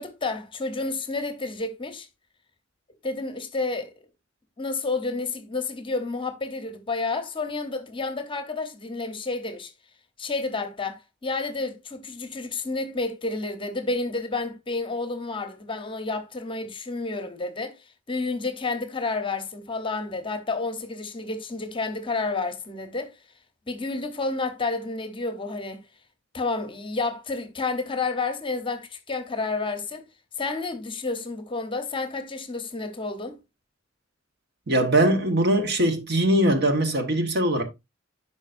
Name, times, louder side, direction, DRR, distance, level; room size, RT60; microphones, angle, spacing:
voice 1, 0.0-2.1 3.0-3.9 4.6-9.7 10.2-17.8 18.1-23.1 23.7-25.8 26.3-30.0 30.4-33.4, left 3 dB, 25° left, 0.9 m, -30 dB
voice 2, 34.7-37.6, right 1 dB, 55° right, 1.5 m, -21 dB
11.0 x 5.2 x 2.6 m
head